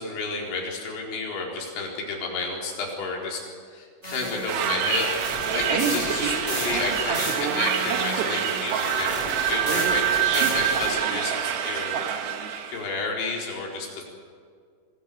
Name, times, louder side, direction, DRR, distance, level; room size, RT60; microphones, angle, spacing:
voice 1, 0.0-3.4 3.7-9.1 9.5-12.0 12.7-14.1, left 3 dB, 65° left, -1 dB, 6.4 m, -31 dB
sound 1, 4.0-10.9, equal, 10° right, 8.0 m, -34 dB
sound 2, 4.5-12.9, right 8 dB, 65° right, 3.3 m, -26 dB
25.0 x 18.0 x 8.5 m, 2.1 s
omnidirectional pair, 5.8 m